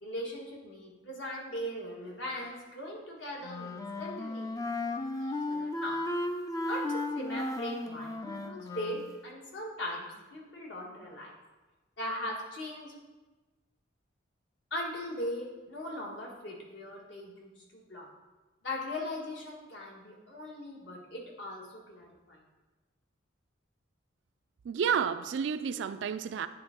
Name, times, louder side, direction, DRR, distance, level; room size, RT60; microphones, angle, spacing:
voice 1, 0.0-4.5 4.8-6.0 6.6-11.3 12.0-13.0 14.7-18.1 18.6-22.4, left 1 dB, 65° left, -3 dB, 1.6 m, -39 dB
Wind instrument woodwind instrument, 3.4-9.1, left 2 dB, 20° left, 0.4 m, -35 dB
voice 2, 24.7-26.5, right 7 dB, 65° right, 11 dB, 0.3 m, -30 dB
9.7 x 3.6 x 4.4 m, 1.2 s
head